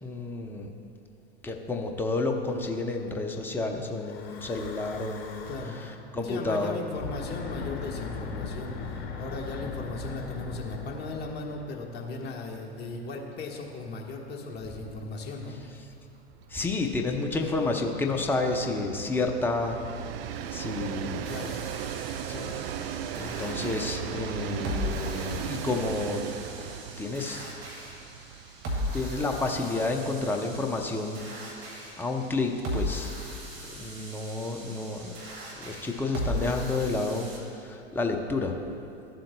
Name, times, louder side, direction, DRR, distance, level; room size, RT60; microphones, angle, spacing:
voice 1, 0.0-0.7 1.4-5.5 5.8-6.7 16.5-20.1 20.5-21.3 22.3-22.5 22.8-26.3 27.0-27.5 28.9-31.2 32.0-33.2 33.7-35.1 35.6-38.6, left 3 dB, 5° left, 3 dB, 0.6 m, -30 dB
Breathing / Wind, 4.0-6.0 6.8-12.2, left 5 dB, 45° left, 1.3 m, -39 dB
voice 2, 5.5-5.8 6.2-15.6 21.2-21.6, left 3 dB, 30° left, -1 dB, 1.3 m, -37 dB
Train, 12.6-12.7 13.0-13.1 13.4-30.8, right 9 dB, 60° right, 0.5 m, -38 dB
sound 1, 21.3-37.4, left 1 dB, 35° right, 2.1 m, -38 dB
14.0 x 7.6 x 2.2 m, 2.6 s
hypercardioid pair, 100°, 34 cm